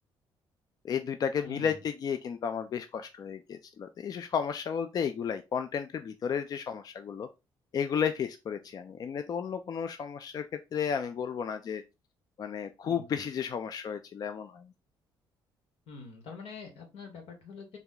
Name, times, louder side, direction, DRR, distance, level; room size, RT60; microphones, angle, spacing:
voice 1, 0.8-7.3 7.7-10.5 10.7-11.8 12.4-14.7, left 7 dB, 45° left, 0.4 m, -33 dB
voice 2, 1.5-1.8 12.8-13.2 15.9-17.8, left 4 dB, 85° left, 1.5 m, -45 dB
4.0 x 2.4 x 3.7 m
cardioid pair, 105°, 9 cm